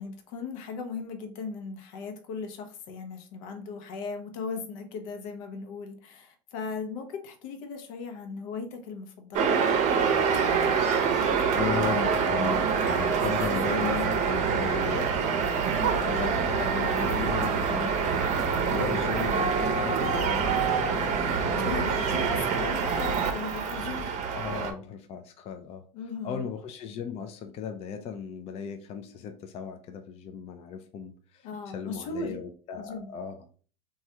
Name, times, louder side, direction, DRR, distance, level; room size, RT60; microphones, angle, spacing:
voice 1, 0.0-9.5 15.8-16.1 18.9-19.2 21.0-21.4 21.6-24.1 25.9-26.5 31.4-32.4 32.8-33.1, left 4 dB, 65° left, 5 dB, 0.7 m, -38 dB
sound 1, 9.3-24.7, right 6 dB, 45° right, 0.7 m, -26 dB
voice 2, 10.8-15.5 16.0-22.3 24.3-25.8 26.2-33.4, left 7 dB, 35° left, 6 dB, 0.4 m, -36 dB
3.1 x 2.3 x 2.8 m, 0.41 s
hypercardioid pair, 100°, 18 cm